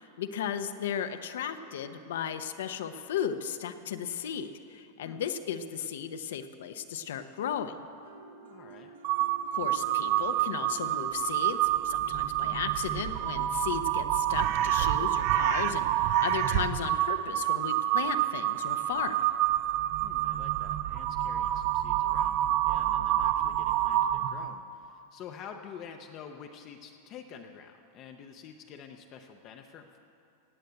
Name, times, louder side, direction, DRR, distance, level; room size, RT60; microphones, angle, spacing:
voice 1, 0.0-7.8 9.5-19.2, left 8 dB, 85° left, 8 dB, 0.8 m, -35 dB
sound 1, 8.0-13.9, right 4 dB, 80° right, 1.5 m, -51 dB
voice 2, 8.4-8.9 20.0-30.0, left 7 dB, 25° left, 4 dB, 0.6 m, -48 dB
Crow, 9.0-24.5, right 13 dB, 35° right, 0.4 m, -28 dB
17.5 x 7.9 x 8.1 m, 2.6 s
supercardioid pair, 180°, 0 cm